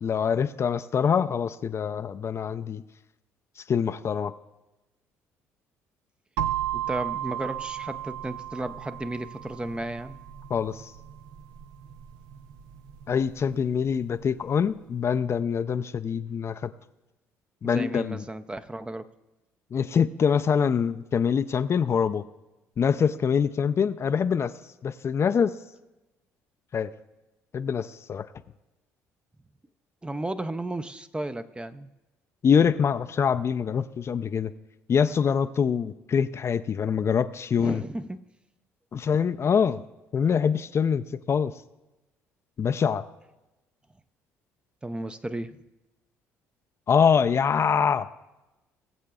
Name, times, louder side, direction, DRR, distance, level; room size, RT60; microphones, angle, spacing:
voice 1, 0.0-2.8 3.6-4.3 10.5-10.9 13.1-16.7 17.6-18.2 19.7-22.2 22.8-24.5 24.8-25.6 26.7-26.9 27.5-28.3 32.4-34.5 34.9-37.8 38.9-39.8 40.1-41.5 42.6-43.0 46.9-48.1, left 7 dB, 40° left, 10 dB, 0.5 m, -24 dB
sound 1, 6.4-14.2, right 11 dB, 70° right, 0.6 m, -35 dB
voice 2, 6.7-10.2 17.6-19.1 30.0-31.9 37.6-38.2 44.8-45.6, right 1 dB, 15° right, 12 dB, 0.6 m, -34 dB
21.0 x 7.5 x 2.3 m, 1.0 s
hypercardioid pair, 60°, 7 cm